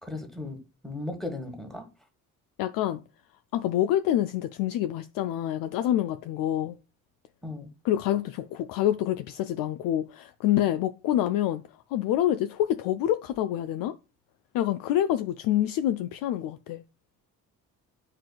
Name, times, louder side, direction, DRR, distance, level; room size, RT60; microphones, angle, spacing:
voice 1, 0.0-1.9 7.4-7.7, left 2 dB, ahead, 1.5 m, -36 dB
voice 2, 2.6-3.0 3.5-6.7 7.8-11.6 11.9-14.0 14.5-16.8, left 12 dB, 50° left, 0.4 m, -27 dB
9.7 x 4.4 x 2.2 m
figure-of-eight pair, 40°, 46 cm